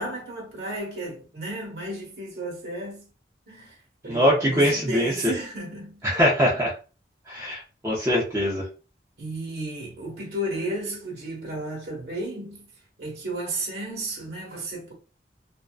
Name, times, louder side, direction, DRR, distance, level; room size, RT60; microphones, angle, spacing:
voice 1, 0.0-3.1 3.5-3.8 4.0-6.1 9.2-12.7 13.0-14.9, right 1 dB, 70° right, 1.0 m, -33 dB
voice 2, 4.0-5.1 6.0-6.7 7.3-8.6, equal, 15° right, 0.5 m, -22 dB
2.5 x 2.2 x 2.3 m
head